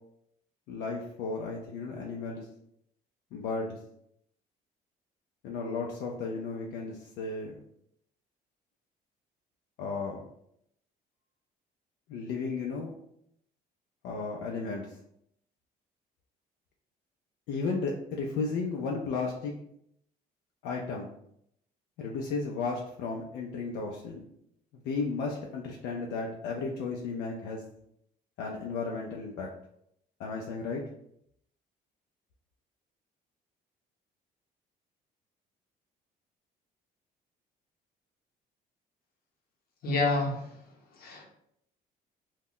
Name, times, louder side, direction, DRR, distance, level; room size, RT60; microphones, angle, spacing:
voice 1, 0.7-2.5 3.3-3.8 5.4-7.6 9.8-10.3 12.1-12.9 14.0-14.9 17.5-19.5 20.6-21.1 22.0-24.2 24.8-27.6 28.4-29.5 30.2-30.8, left 4 dB, 90° left, -1 dB, 0.4 m, -34 dB
voice 2, 39.8-40.6 41.0-41.2, left 3 dB, 65° left, 0 dB, 0.8 m, -28 dB
2.2 x 2.0 x 3.7 m, 0.73 s
cardioid pair, 110°, 17 cm